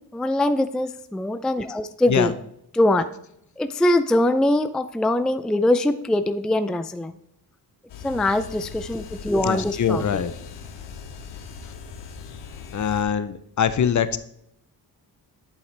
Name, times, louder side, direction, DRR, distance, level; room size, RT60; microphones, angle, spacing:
voice 1, 0.0-2.3 2.7-3.1 3.6-7.1 8.0-10.2, left 1 dB, ahead, 11 dB, 0.4 m, -22 dB
sound 1, 7.9-13.0, left 5 dB, 85° left, 1.1 m, -40 dB
voice 2, 9.4-10.3 12.7-14.2, left 8 dB, 45° left, 13 dB, 0.7 m, -23 dB
11.0 x 5.6 x 3.3 m, 0.75 s
cardioid pair, 70°, 41 cm